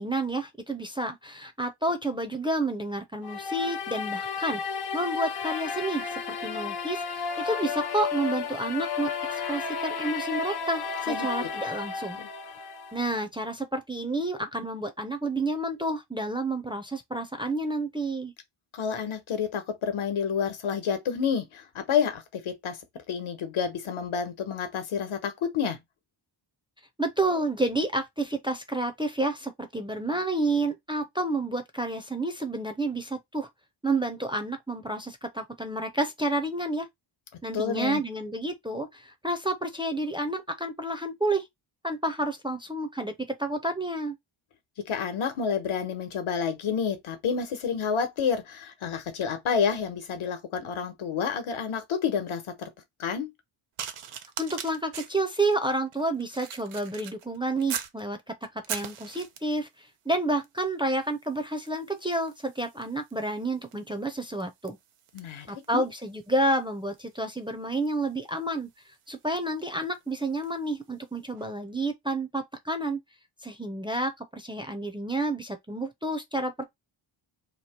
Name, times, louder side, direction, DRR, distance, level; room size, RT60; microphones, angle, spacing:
voice 1, 0.0-4.6 4.9-12.2 12.9-18.3 27.0-33.5 33.8-36.9 37.4-41.5 41.8-43.1 43.4-44.1 54.4-58.3 58.7-59.7 60.1-64.8 65.5-68.7 69.1-73.0 73.4-76.6, right 2 dB, 10° right, 0.4 m, -30 dB
sound 1, 3.2-13.2, left 5 dB, 50° left, 0.7 m, -33 dB
voice 2, 11.1-11.5 12.2-12.3 18.7-22.8 23.1-25.8 37.5-38.0 44.9-52.7 53.0-53.3 65.1-65.5 65.7-65.8, left 7 dB, 75° left, 1.1 m, -29 dB
sound 2, 53.8-58.0 58.4-59.7 60.4-60.7 61.0-70.7 71.4-71.5, right 8 dB, 90° right, 0.8 m, -42 dB
2.9 x 2.8 x 4.2 m
wide cardioid pair, 160°, 50 cm